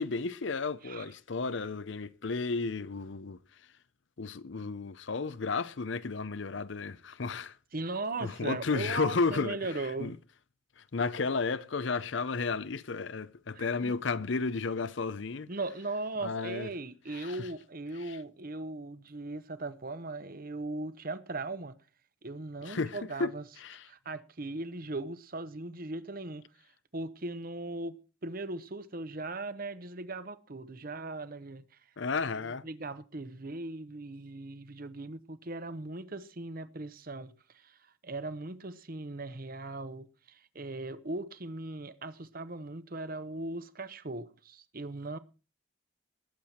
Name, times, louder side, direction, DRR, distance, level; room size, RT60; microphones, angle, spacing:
voice 1, 0.0-3.4 4.2-7.6 8.2-9.6 10.0-10.1 10.8-15.5 16.2-16.7 17.1-17.3 18.1-18.2 22.6-23.3 23.6-23.8 32.0-32.6, left 4 dB, 60° left, 0.6 m, -33 dB
voice 2, 7.7-10.1 13.5-14.0 15.5-21.7 22.2-23.4 23.8-26.4 26.9-31.6 32.4-37.8 38.0-45.2, right 2 dB, 45° right, 0.9 m, -39 dB
20.0 x 7.6 x 4.3 m
head